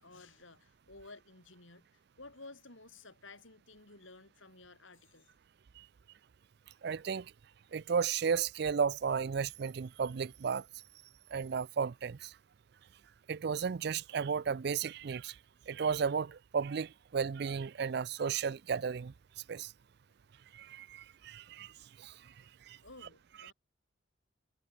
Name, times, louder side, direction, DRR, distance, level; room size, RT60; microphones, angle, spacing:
voice 1, 0.0-5.3 22.8-23.5, left 3 dB, 80° left, 7.4 m, -54 dB
voice 2, 6.8-7.3 7.7-10.6 11.3-12.3 13.3-15.3 15.7-19.1 19.5-19.7 20.5-21.7 22.0-22.1 22.7-22.8, right 6 dB, 55° right, 0.4 m, -34 dB
head